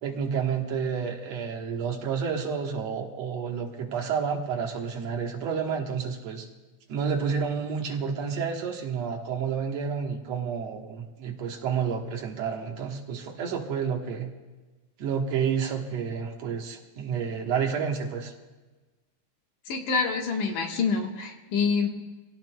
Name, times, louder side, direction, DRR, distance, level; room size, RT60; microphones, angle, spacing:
voice 1, 0.0-6.5 6.9-14.3 15.0-18.3, right 6 dB, 60° right, 1 dB, 2.2 m, -30 dB
voice 2, 19.7-21.9, left 5 dB, 70° left, 2 dB, 2.8 m, -26 dB
25.0 x 17.0 x 2.2 m, 1.2 s
omnidirectional pair, 3.8 m